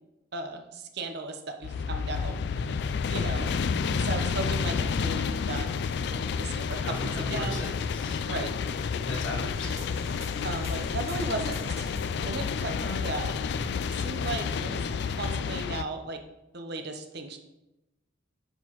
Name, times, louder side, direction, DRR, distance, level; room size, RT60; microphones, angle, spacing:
voice 1, 0.3-2.7 3.1-3.6 3.9-7.6 8.3-8.6 10.4-11.9 12.1-13.4 13.9-14.8 15.1-16.2 16.5-17.4, right 3 dB, 60° right, 5 dB, 0.9 m, -36 dB
sound 1, 1.6-15.8, left 5 dB, 60° left, 0.3 m, -30 dB
voice 2, 6.7-8.2 8.9-10.0 10.8-10.9 12.5-13.0, left 2 dB, 80° left, -1 dB, 1.6 m, -37 dB
sound 2, 9.5-12.9, right 2 dB, 35° right, 1.3 m, -45 dB
8.9 x 6.1 x 3.1 m, 0.98 s
head